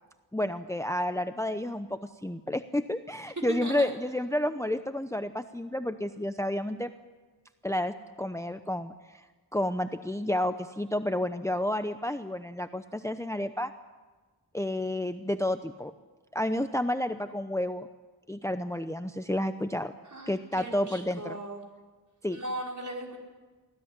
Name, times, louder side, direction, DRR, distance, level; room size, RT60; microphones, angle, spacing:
voice 1, 0.3-6.9 7.6-9.2 9.5-13.7 14.5-15.9 16.3-17.9 18.3-19.9 20.3-21.4 22.2-22.4, left 1 dB, 5° left, 9 dB, 0.8 m, -30 dB
voice 2, 3.5-3.9 20.0-21.6 22.3-23.2, right 1 dB, 45° right, 0 dB, 5.5 m, -38 dB
24.5 x 16.5 x 9.8 m, 1.3 s
wide cardioid pair, 80°, 41 cm